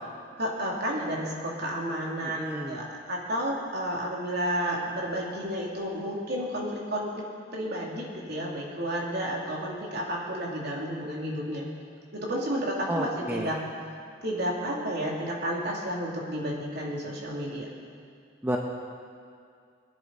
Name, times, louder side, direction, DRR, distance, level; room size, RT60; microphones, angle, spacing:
voice 1, 0.4-7.2 7.5-11.7 12.1-13.6 14.2-17.7, equal, 55° right, -3 dB, 2.9 m, -31 dB
voice 2, 2.2-2.8 12.9-13.5 18.4-18.6, right 1 dB, 10° right, 0 dB, 0.8 m, -31 dB
22.5 x 10.5 x 4.1 m, 2.3 s
head